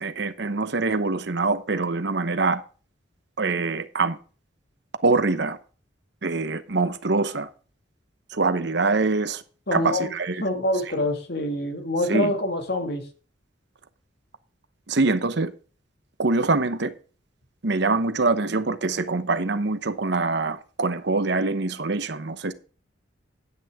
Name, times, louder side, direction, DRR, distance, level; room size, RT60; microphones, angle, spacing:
voice 1, 0.0-2.6 3.4-4.2 5.0-5.6 6.2-7.5 8.3-9.4 9.7-10.4 12.1-12.3 14.9-15.5 16.2-16.9 17.6-22.5, right 3 dB, 60° right, 0.9 m, -24 dB
voice 2, 9.7-10.1 10.4-13.0, left 1 dB, 60° left, 2.1 m, -26 dB
10.0 x 9.5 x 3.6 m
head